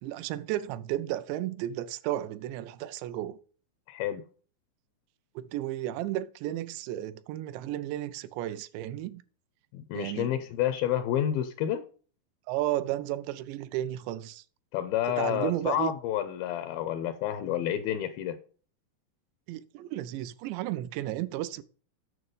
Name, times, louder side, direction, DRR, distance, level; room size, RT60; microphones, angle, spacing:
voice 1, 0.0-3.4 5.4-9.2 9.9-10.4 12.5-14.4 15.2-15.9 19.5-21.6, right 14 dB, 85° right, 2.8 m, -33 dB
voice 2, 3.9-4.2 9.7-11.8 14.7-18.4, left 11 dB, 85° left, 2.1 m, -29 dB
9.8 x 5.9 x 5.4 m
omnidirectional pair, 5.0 m